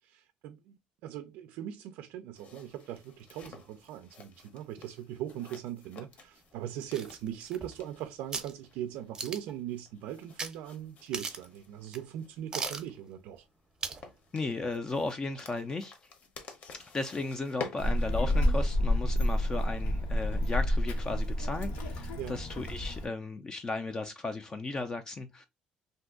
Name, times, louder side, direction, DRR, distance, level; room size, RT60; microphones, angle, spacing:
voice 1, 0.0-13.5 22.2-22.4, right 11 dB, 85° right, 0.3 m, -40 dB
sound 1, 2.3-18.6, left 5 dB, 50° left, 0.8 m, -50 dB
sound 2, 6.9-7.9 8.3-8.5 9.1-9.6 10.4-10.5 10.8-10.9 11.1-11.6 11.9-12.0 12.5-12.9 13.8-14.1 14.4-14.5, right 4 dB, 25° right, 0.6 m, -37 dB
voice 2, 14.3-15.9 16.9-25.5, left 3 dB, 25° left, 0.3 m, -35 dB
Child speech kid speaking, 17.8-23.1, left 1 dB, 85° left, 0.8 m, -29 dB
2.5 x 2.3 x 3.6 m
cardioid pair, 130°, 3 cm